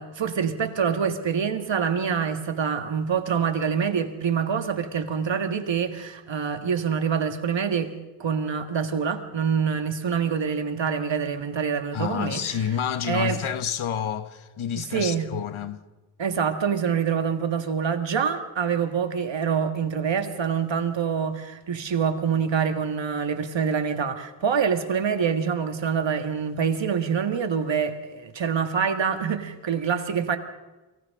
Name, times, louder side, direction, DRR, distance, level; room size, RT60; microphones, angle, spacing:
voice 1, 0.0-7.9 8.2-12.4 13.1-13.4 14.8-15.3 16.2-30.4, right 6 dB, 65° right, 1.8 m, -26 dB
voice 2, 11.9-15.8, left 9 dB, 75° left, 1.2 m, -29 dB
29.5 x 24.5 x 3.8 m
wide cardioid pair, 100°, 48 cm